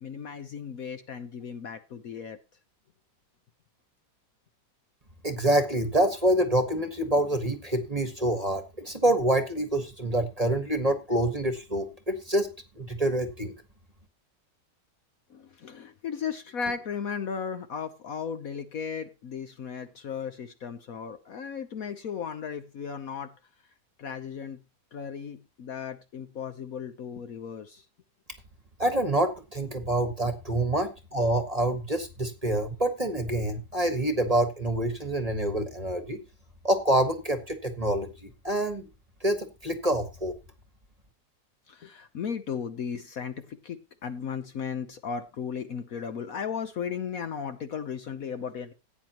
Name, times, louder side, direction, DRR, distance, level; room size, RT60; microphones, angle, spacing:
voice 1, 0.0-2.4 15.3-23.3 24.0-24.6 24.9-27.8 41.7-48.7, left 6 dB, 60° left, 1.1 m, -36 dB
voice 2, 5.2-13.5 28.8-36.2 36.6-38.9 39.2-40.3, right 1 dB, 25° right, 1.3 m, -26 dB
16.0 x 9.3 x 2.9 m
omnidirectional pair, 1.9 m